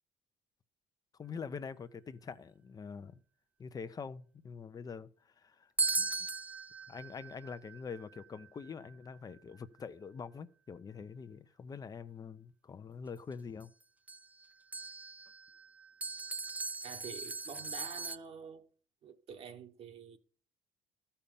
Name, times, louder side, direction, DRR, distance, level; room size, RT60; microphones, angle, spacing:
voice 1, 1.2-3.2 3.6-5.7 6.0-6.1 6.9-13.7, left 5 dB, 30° left, 0.8 m, -45 dB
sound 1, 5.8-9.6 13.6-13.7 14.1-18.2, right 3 dB, 10° right, 0.7 m, -39 dB
voice 2, 16.8-18.7 19.0-20.2, right 7 dB, 50° right, 1.4 m, -48 dB
13.5 x 5.7 x 7.0 m
cardioid pair, 105°, 12 cm